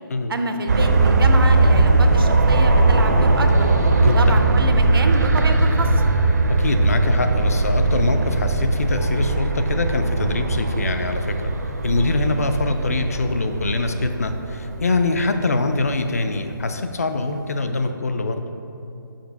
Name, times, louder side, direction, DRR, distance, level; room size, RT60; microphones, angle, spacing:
voice 1, 0.3-3.7 4.0-5.9, right 2 dB, 85° right, 6 dB, 0.7 m, -27 dB
sound 1, 0.7-15.9 16.5-16.6, right 2 dB, 50° right, 0.5 m, -19 dB
voice 2, 4.0-4.3 6.5-11.5 11.8-18.4, left 3 dB, 45° left, 7 dB, 0.4 m, -24 dB
5.1 x 4.7 x 5.1 m, 2.7 s
hypercardioid pair, 175°, 12 cm